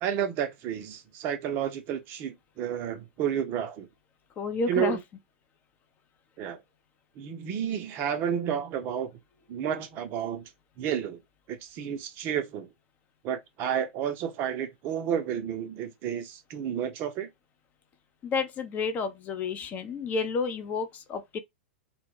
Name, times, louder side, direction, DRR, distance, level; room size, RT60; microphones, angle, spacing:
voice 1, 0.0-3.9 4.7-5.0 6.4-6.6 7.2-9.1 9.5-10.4 10.8-11.2 11.5-12.7 13.2-17.3, right 9 dB, 35° right, 0.5 m, -31 dB
voice 2, 4.4-5.0 18.2-21.4, left 4 dB, 25° left, 0.5 m, -30 dB
2.1 x 2.1 x 3.0 m
figure-of-eight pair, 100°, 6 cm